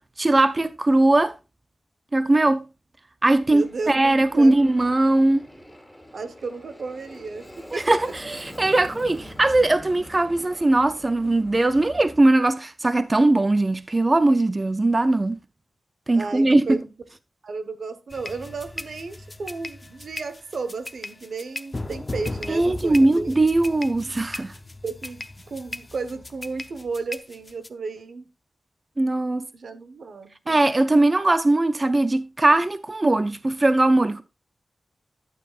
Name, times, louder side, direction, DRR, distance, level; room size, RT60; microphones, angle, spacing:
voice 1, 0.2-1.3 2.1-2.6 3.2-5.4 7.7-15.4 16.1-16.8 22.5-24.5 29.0-29.4 30.5-34.2, right 2 dB, 30° right, 0.5 m, -20 dB
Aircraft, 3.4-12.2, equal, ahead, 2.6 m, -44 dB
voice 2, 3.4-4.6 6.1-7.8 16.1-16.9 17.4-23.5 24.8-28.3 29.5-30.6, right 4 dB, 75° right, 1.1 m, -33 dB
sound 1, 18.1-27.7, left 2 dB, 30° left, 0.7 m, -37 dB
11.5 x 9.1 x 2.4 m
wide cardioid pair, 90°, 0 cm